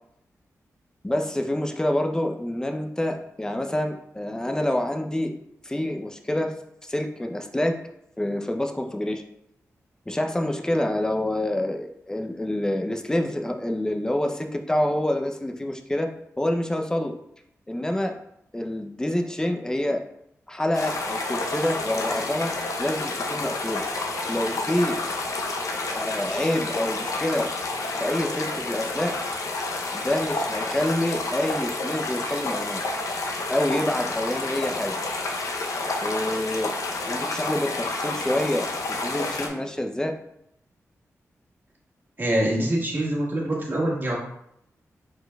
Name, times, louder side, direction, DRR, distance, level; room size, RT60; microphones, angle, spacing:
voice 1, 1.0-5.3 5.6-6.5 6.8-7.8 8.2-9.2 10.1-16.1 16.4-17.2 17.7-18.2 18.5-20.0 20.5-23.8 24.3-25.0 25.9-27.5 28.0-29.2 29.9-32.8 33.5-35.0 36.0-36.7 37.1-40.2, left 1 dB, 10° left, 5 dB, 0.6 m, -27 dB
sound 1, 20.7-39.5, left 2 dB, 75° left, 0.7 m, -29 dB
voice 2, 42.2-44.2, right 1 dB, 40° right, -3 dB, 1.6 m, -24 dB
4.4 x 4.4 x 2.3 m, 0.76 s
cardioid pair, 60°, 6 cm